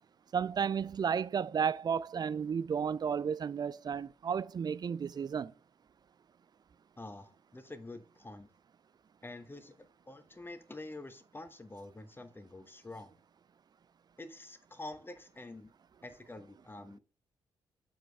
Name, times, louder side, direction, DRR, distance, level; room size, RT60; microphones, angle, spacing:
voice 1, 0.3-5.5, right 7 dB, 35° right, 0.3 m, -33 dB
voice 2, 7.0-8.5 9.2-13.1 14.2-15.7 16.0-17.0, left 2 dB, 20° left, 1.1 m, -47 dB
7.5 x 4.6 x 3.4 m
hypercardioid pair, 40°, 11 cm